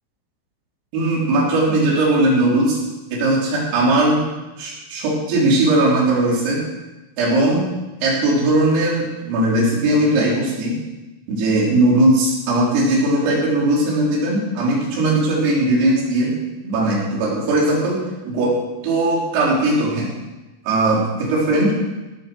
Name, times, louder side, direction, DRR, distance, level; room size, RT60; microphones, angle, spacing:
voice 1, 0.9-2.8 3.1-4.2 4.6-6.6 7.2-7.6 8.0-10.7 11.3-16.3 16.6-18.0 18.2-18.6 18.8-20.1 20.7-21.7, right 1 dB, 80° right, -4 dB, 6.0 m, -18 dB
17.0 x 6.9 x 6.9 m, 1.1 s
omnidirectional pair, 5.9 m